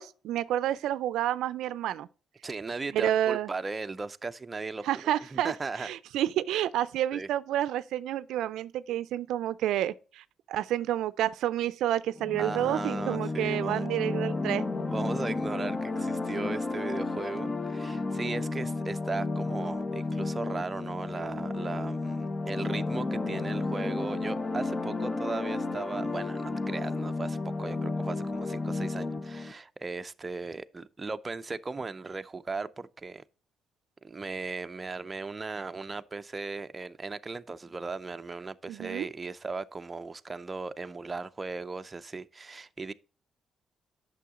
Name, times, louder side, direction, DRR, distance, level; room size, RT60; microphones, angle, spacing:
voice 1, 0.0-2.1 2.9-3.5 4.9-5.5 5.8-14.6 38.7-39.1, right 12 dB, 85° right, 0.4 m, -29 dB
voice 2, 2.4-5.9 7.1-7.3 12.4-13.9 14.9-33.2 34.0-42.9, right 3 dB, 25° right, 0.5 m, -37 dB
sound 1, 12.2-29.5, left 3 dB, 30° left, 0.8 m, -32 dB
8.3 x 6.3 x 3.6 m
cardioid pair, 90°, 0 cm